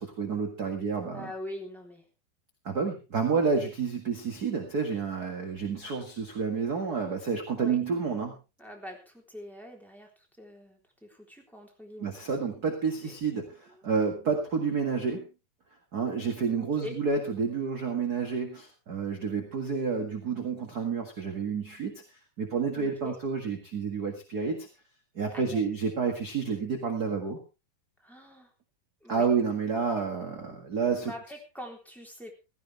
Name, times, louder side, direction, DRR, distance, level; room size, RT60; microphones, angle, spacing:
voice 1, 0.0-1.3 2.6-8.3 12.0-15.3 15.9-21.9 22.4-24.7 25.1-27.4 29.1-31.1, right 5 dB, 35° right, 4 dB, 1.6 m, -29 dB
voice 2, 1.1-2.0 7.5-7.8 8.6-12.1 13.0-13.1 13.7-13.8 14.3-14.4 16.6-17.0 22.7-23.1 25.3-25.7 28.0-28.5 29.0-29.3 31.0-32.3, left 1 dB, ahead, 1 dB, 3.0 m, -43 dB
16.5 x 14.5 x 3.4 m, 0.30 s
omnidirectional pair, 4.3 m